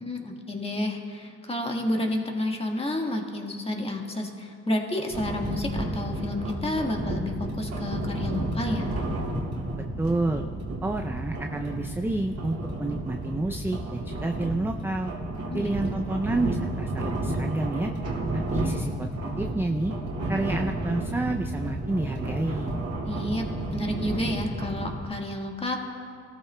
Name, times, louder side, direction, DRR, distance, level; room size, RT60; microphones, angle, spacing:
voice 1, 0.0-8.9 15.5-15.7 23.0-23.5 23.7-25.8, left 1 dB, 20° left, 1 dB, 1.5 m, -30 dB
sound 1, 5.1-25.0, right 1 dB, 55° right, 2.2 m, -32 dB
voice 2, 9.8-10.4 10.8-15.1 15.5-17.9 18.5-19.1 19.4-19.9 20.3-22.8, right 2 dB, 10° right, 4 dB, 0.4 m, -29 dB
19.0 x 13.5 x 2.2 m, 2.3 s
cardioid pair, 90°, 30 cm